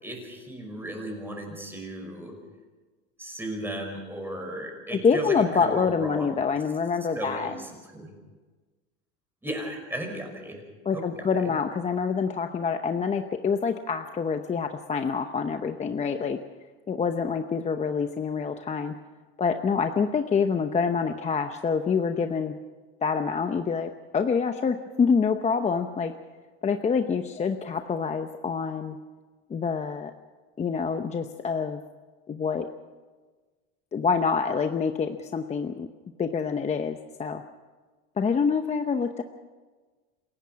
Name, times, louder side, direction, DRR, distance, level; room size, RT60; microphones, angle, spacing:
voice 1, 0.0-2.4 3.2-6.4 7.1-8.1 9.4-10.6 10.9-11.6, right 1 dB, 5° right, 2 dB, 5.6 m, -35 dB
voice 2, 4.9-7.5 10.9-16.4 16.9-18.9 19.4-22.5 23.0-26.1 26.6-29.0 29.5-30.1 30.6-31.8 32.3-32.7 33.9-35.9 36.2-37.4 38.2-39.2, left 5 dB, 20° left, 7 dB, 0.8 m, -26 dB
27.5 x 16.0 x 5.9 m, 1.3 s
supercardioid pair, 130°, 33 cm